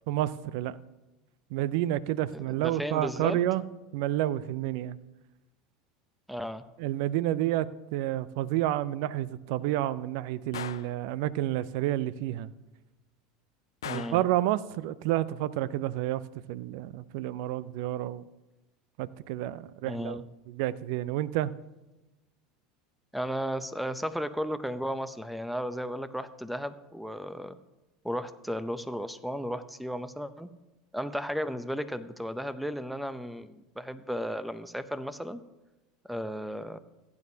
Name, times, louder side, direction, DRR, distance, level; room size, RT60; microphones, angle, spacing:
voice 1, 0.1-0.8 1.5-3.6 3.9-5.0 6.8-12.5 13.8-16.2 16.5-18.2 19.0-21.5, right 14 dB, 65° right, 19 dB, 0.4 m, -30 dB
voice 2, 2.3-3.4 6.3-6.6 13.8-14.3 19.8-20.2 23.1-27.6 28.0-30.5 30.9-35.4 36.1-36.8, equal, ahead, 13 dB, 0.6 m, -34 dB
Gunshot gunfire, 10.5-11.0 13.8-14.3, left 10 dB, 85° left, 0.3 m, -39 dB
15.5 x 9.5 x 2.8 m, 1.0 s
hypercardioid pair, 85°, 2 cm